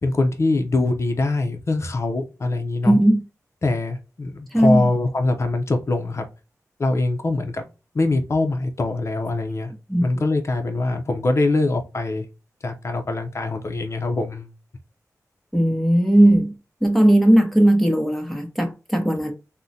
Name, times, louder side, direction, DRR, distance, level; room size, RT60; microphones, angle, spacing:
voice 1, 0.0-3.0 3.6-6.3 6.8-7.6 7.9-9.7 10.0-12.2 12.6-14.5, left 2 dB, 50° left, 0.6 m, -23 dB
voice 2, 2.8-3.2 4.5-4.9 9.9-10.1 15.5-16.5 16.8-19.3, right 1 dB, ahead, 0.8 m, -17 dB
3.6 x 2.1 x 2.7 m
wide cardioid pair, 70°, 6 cm